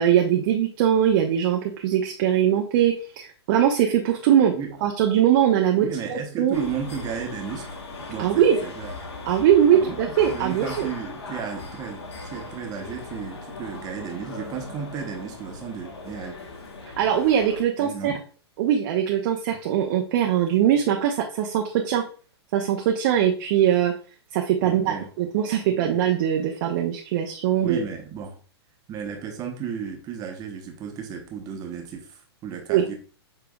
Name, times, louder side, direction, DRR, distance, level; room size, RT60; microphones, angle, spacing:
voice 1, 0.0-4.5 4.8-6.6 8.2-8.6 9.3-10.9 17.0-18.1 18.6-22.0 22.5-23.9 24.3-27.8 32.7-32.9, right 10 dB, 50° right, 1 dB, 0.7 m, -21 dB
voice 2, 5.8-7.7 8.1-8.9 9.7-10.0 10.3-16.3 17.8-18.2 24.6-25.1 25.6-25.8 27.6-28.4 28.9-32.9, right 7 dB, 25° right, 2 dB, 1.0 m, -34 dB
sound 1, 6.5-17.6, left 3 dB, 75° left, 1.2 m, -38 dB
7.0 x 3.3 x 2.3 m, 0.39 s
hypercardioid pair, 120°, 14 cm